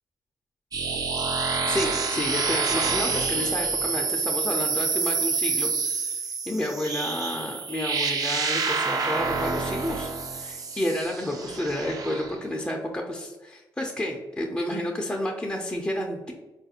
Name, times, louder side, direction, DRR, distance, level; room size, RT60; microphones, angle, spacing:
sound 1, 0.7-12.4, right 4 dB, 45° right, 0.5 m, -27 dB
voice 1, 1.7-6.2 6.5-16.3, left 1 dB, 15° left, -1 dB, 0.5 m, -30 dB
3.8 x 2.4 x 2.8 m, 1.2 s
cardioid pair, 65°, 8 cm